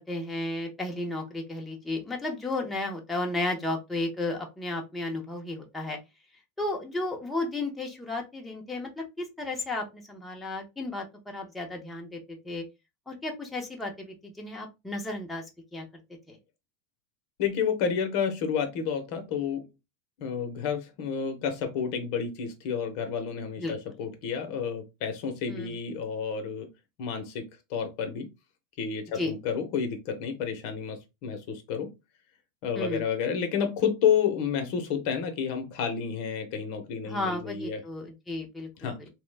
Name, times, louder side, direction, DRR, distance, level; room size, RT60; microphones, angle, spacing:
voice 1, 0.0-6.0 6.6-12.6 13.1-15.8 16.3-16.4 23.6-23.7 25.5-25.8 29.1-29.3 32.7-33.0 37.0-38.9, left 2 dB, 5° left, 0.6 m, -33 dB
voice 2, 17.4-19.7 20.2-26.7 27.0-27.4 27.7-28.3 28.8-31.9 32.6-37.8 38.8-39.0, left 7 dB, 50° left, 0.7 m, -30 dB
2.9 x 2.0 x 3.2 m
supercardioid pair, 155°, 0 cm